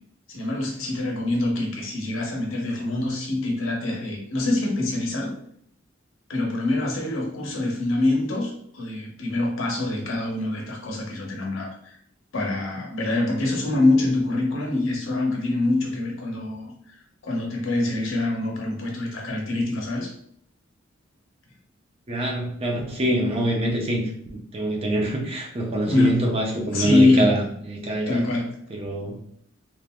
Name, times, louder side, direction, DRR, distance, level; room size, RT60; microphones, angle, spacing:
voice 1, 0.3-5.3 6.3-12.0 12.3-16.9 17.2-20.1 25.8-26.3 26.7-27.4 28.1-28.5, left 2 dB, 85° left, -1 dB, 0.8 m, -25 dB
voice 2, 22.1-28.2 28.7-29.2, right 1 dB, 30° right, -1 dB, 0.6 m, -25 dB
3.2 x 2.4 x 2.2 m, 0.66 s
head